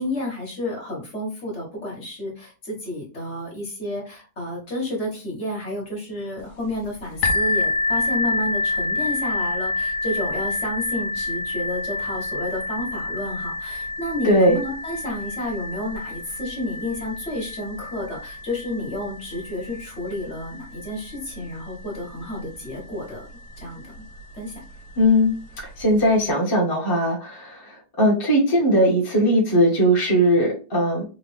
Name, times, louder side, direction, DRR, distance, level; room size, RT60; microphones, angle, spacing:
voice 1, 0.0-23.3 23.6-23.9 24.3-24.6, left 1 dB, 45° left, -2 dB, 1.6 m, -31 dB
sound 1, 7.2-22.8 23.5-23.6 24.2-24.3, left 2 dB, 85° left, 1.2 m, -28 dB
voice 2, 14.2-14.6 25.0-25.3 25.8-31.0, equal, 15° left, -3 dB, 1.1 m, -19 dB
3.7 x 2.6 x 3.3 m, 0.34 s
omnidirectional pair, 1.7 m